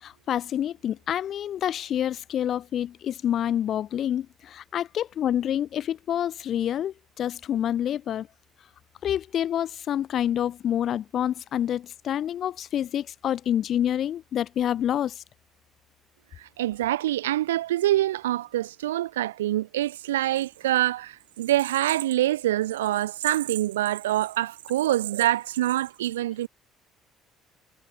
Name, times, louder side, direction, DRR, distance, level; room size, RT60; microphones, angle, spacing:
voice 1, 0.0-8.3 9.0-15.1, left 10 dB, 45° left, 6.6 m, -27 dB
voice 2, 16.6-26.5, right 14 dB, 70° right, 6.4 m, -25 dB
figure-of-eight pair, 50°, 0 cm